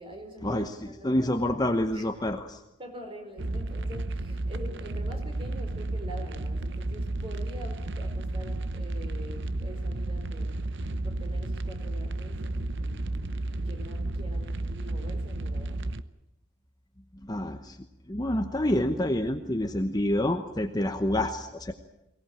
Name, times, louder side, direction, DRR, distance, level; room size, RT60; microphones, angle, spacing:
voice 1, 0.0-1.3 1.9-2.1 2.8-10.6 11.0-15.8, equal, 25° right, 4 dB, 4.7 m, -45 dB
voice 2, 1.0-2.6 17.3-17.8 18.1-21.7, left 1 dB, 20° left, 6 dB, 1.0 m, -27 dB
sound 1, 3.4-16.0, right 2 dB, 60° right, 0.9 m, -32 dB
23.0 x 18.0 x 8.9 m, 0.92 s
head